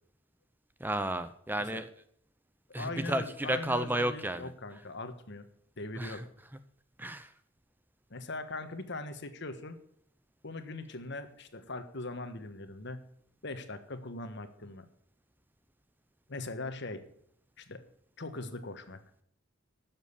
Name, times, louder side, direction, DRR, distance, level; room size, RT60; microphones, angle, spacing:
voice 1, 0.8-1.9 2.7-4.5 6.0-6.3 7.0-7.3, right 1 dB, 10° right, 11 dB, 0.6 m, -32 dB
voice 2, 2.8-5.5 5.8-6.2 8.1-9.8 10.4-13.1 13.4-14.9 16.3-17.1 17.6-17.8 18.2-19.0, left 2 dB, 55° left, 9 dB, 1.5 m, -40 dB
13.0 x 7.5 x 8.4 m, 0.66 s
head